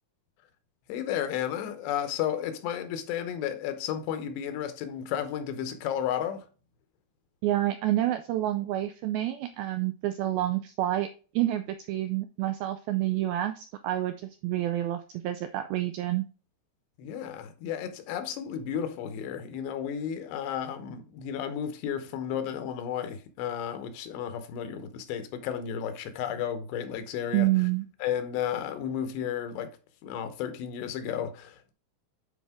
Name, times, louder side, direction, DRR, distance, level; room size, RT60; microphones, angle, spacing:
voice 1, 0.9-6.5 17.0-27.5 28.0-29.8 30.0-31.7, left 9 dB, 85° left, 3.1 m, -33 dB
voice 2, 7.4-11.1 11.3-16.2 27.3-27.9, right 14 dB, 85° right, 2.1 m, -28 dB
10.0 x 4.5 x 3.5 m
omnidirectional pair, 4.9 m